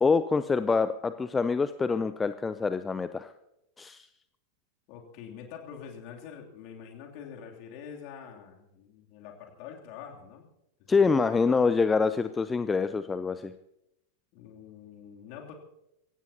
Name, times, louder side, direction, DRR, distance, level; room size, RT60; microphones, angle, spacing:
voice 1, 0.0-3.3 3.8-4.1 10.9-13.5, left 4 dB, 15° left, 12 dB, 0.5 m, -26 dB
voice 2, 4.9-10.5 10.9-11.2 14.3-15.5, left 7 dB, 45° left, 0 dB, 2.9 m, -45 dB
24.0 x 16.5 x 2.9 m, 0.86 s
figure-of-eight pair, 90°, 0 cm